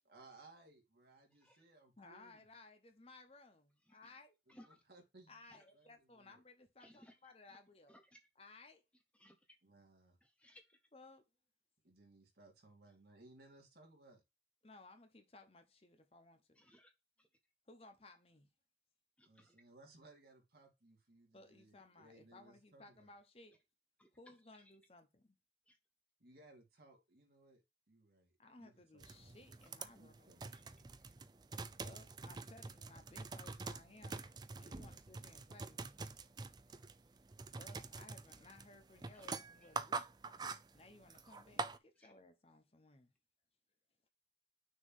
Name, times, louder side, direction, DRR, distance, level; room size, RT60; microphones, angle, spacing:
voice 1, 0.0-2.4 4.5-6.4 9.6-10.2 11.8-14.2 19.3-23.1 26.2-27.6 28.6-29.4 29.9-30.9, right 2 dB, 60° right, 2.3 m, -63 dB
voice 2, 1.3-1.6 3.9-4.2 4.5-4.8 5.4-5.6 6.8-7.6 7.9-8.2 9.1-9.6 10.2-10.8 16.5-16.9 17.2-17.3 19.2-19.6 24.0-24.4 24.7-24.8 25.7-25.8 30.5-30.6 31.0-31.1 33.4-33.5 39.1-39.3 39.6-39.7 42.0-42.1, equal, 5° left, 0.8 m, -64 dB
voice 3, 2.0-4.4 5.3-8.0 8.4-8.8 10.9-11.2 14.6-16.6 17.7-18.5 21.3-23.6 24.1-25.4 28.4-30.4 31.8-34.2 34.6-36.0 37.6-40.1 40.7-43.1, left 2 dB, 35° left, 0.9 m, -60 dB
sound 1, 29.0-41.8, right 4 dB, 25° right, 0.4 m, -46 dB
6.4 x 3.1 x 5.5 m
head